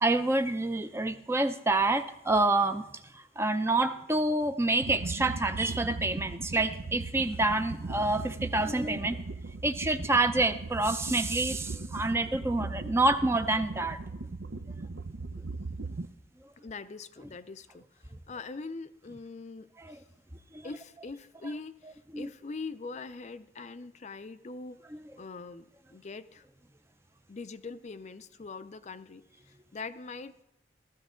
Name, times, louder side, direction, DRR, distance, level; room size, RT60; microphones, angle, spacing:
voice 1, 0.0-9.2 9.6-14.0 18.1-18.2 19.8-20.0 20.5-20.7 22.1-22.3 24.9-25.1, right 2 dB, 15° right, 9 dB, 0.5 m, -28 dB
sound 1, 4.8-16.1, right 3 dB, 75° right, 0.7 m, -38 dB
voice 2, 16.6-17.9 18.3-20.0 20.6-24.8 25.2-25.6 25.9-26.4 27.3-30.4, left 3 dB, 35° left, 12 dB, 0.5 m, -42 dB
14.5 x 14.0 x 3.7 m, 0.82 s
head